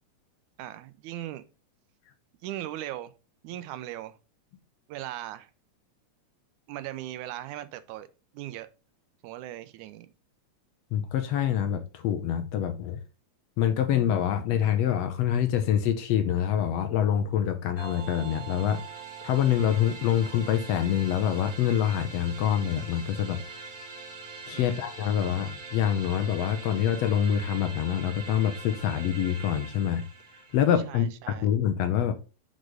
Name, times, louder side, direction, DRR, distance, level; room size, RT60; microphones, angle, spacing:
voice 1, 0.6-1.4 2.4-3.1 3.4-4.2 4.9-5.5 6.7-8.1 8.3-8.7 9.2-10.1 24.5-24.8 30.9-31.5, right 13 dB, 90° right, 2.1 m, -38 dB
voice 2, 10.9-13.0 13.6-18.8 19.2-23.7 24.5-30.0 30.5-32.1, left 9 dB, 75° left, 1.6 m, -26 dB
sound 1, 17.8-30.9, right 4 dB, 55° right, 2.2 m, -43 dB
6.3 x 4.0 x 4.9 m
omnidirectional pair, 3.4 m